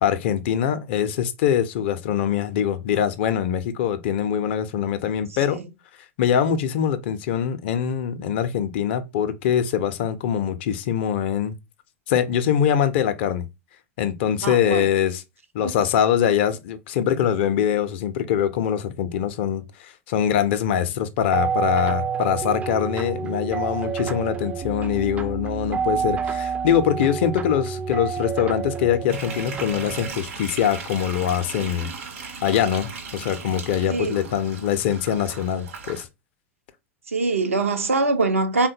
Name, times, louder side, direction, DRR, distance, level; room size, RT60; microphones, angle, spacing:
voice 1, 0.0-5.6 6.2-11.6 12.1-13.5 14.0-15.2 15.5-19.6 20.1-31.9 32.4-36.1, left 9 dB, 55° left, 0.4 m, -23 dB
voice 2, 14.4-14.9 15.6-15.7 33.9-34.2 37.1-38.7, right 3 dB, 75° right, 0.5 m, -23 dB
sound 1, 21.3-30.1, right 6 dB, 20° right, 0.3 m, -28 dB
sound 2, 29.1-36.0, right 5 dB, 60° right, 0.9 m, -37 dB
3.6 x 2.1 x 2.6 m
figure-of-eight pair, 85°, 7 cm